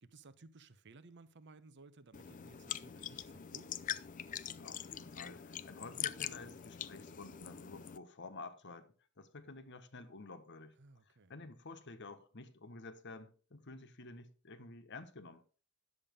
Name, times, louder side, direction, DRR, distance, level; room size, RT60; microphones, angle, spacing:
voice 1, 0.0-3.7 10.8-11.3, right 3 dB, 55° right, 0.8 m, -58 dB
sound 1, 2.1-8.0, left 9 dB, 35° left, 0.5 m, -43 dB
voice 2, 4.6-10.8 11.1-15.4, left 3 dB, 55° left, 1.3 m, -51 dB
10.5 x 7.2 x 5.3 m
head